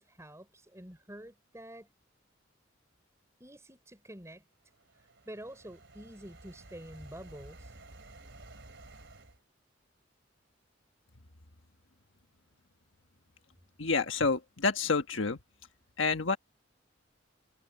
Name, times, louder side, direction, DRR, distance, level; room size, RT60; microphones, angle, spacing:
voice 1, 0.0-1.9 3.4-4.4 5.0-7.8, right 1 dB, 15° right, 6.0 m, -48 dB
sound 1, 4.7-9.4, right 2 dB, 65° right, 3.1 m, -53 dB
voice 2, 13.8-15.4 16.0-16.4, left 4 dB, 75° left, 1.4 m, -28 dB
head